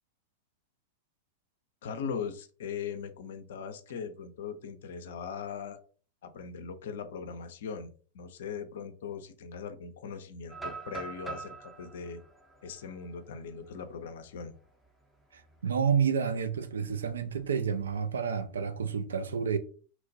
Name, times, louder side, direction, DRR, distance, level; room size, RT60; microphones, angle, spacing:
voice 1, 1.8-5.8 6.2-12.2 12.6-14.5, left 6 dB, 60° left, 0.4 m, -40 dB
sound 1, 10.5-14.4 14.8-14.9 15.4-15.7 17.1-17.9, right 4 dB, 10° right, 0.5 m, -44 dB
voice 2, 15.3-19.6, right 7 dB, 70° right, 0.3 m, -30 dB
3.0 x 2.2 x 2.5 m
figure-of-eight pair, 90°, 0 cm